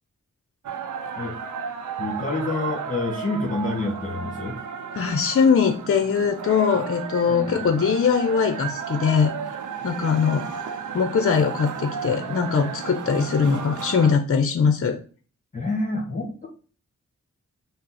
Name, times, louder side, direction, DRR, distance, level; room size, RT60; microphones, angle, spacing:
sound 1, 0.6-14.1, right 6 dB, 85° right, 0.6 m, -33 dB
voice 1, 2.0-4.6 7.3-7.8 15.5-16.5, left 2 dB, 25° left, -1 dB, 1.2 m, -28 dB
voice 2, 4.9-9.3 9.8-10.5 10.9-15.0, left 6 dB, 50° left, 6 dB, 0.6 m, -21 dB
5.2 x 2.1 x 4.1 m, 0.40 s
cardioid pair, 55°, 30 cm